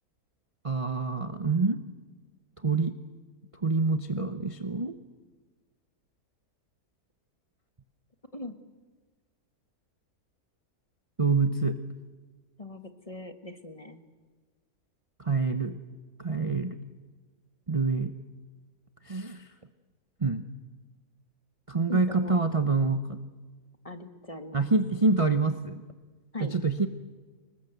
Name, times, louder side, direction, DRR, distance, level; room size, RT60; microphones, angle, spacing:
voice 1, 0.6-1.8 2.6-2.9 3.6-4.9 11.2-11.7 15.2-15.8 16.2-16.8 17.7-18.1 19.1-19.5 20.2-20.4 21.7-23.2 24.5-25.8 26.4-26.9, right 4 dB, 25° right, 8 dB, 0.8 m, -26 dB
voice 2, 12.6-14.0 21.9-22.4 23.8-24.7 26.3-26.5, left 2 dB, 25° left, 8 dB, 1.3 m, -40 dB
25.0 x 20.5 x 8.0 m, 1.4 s
omnidirectional pair, 1.6 m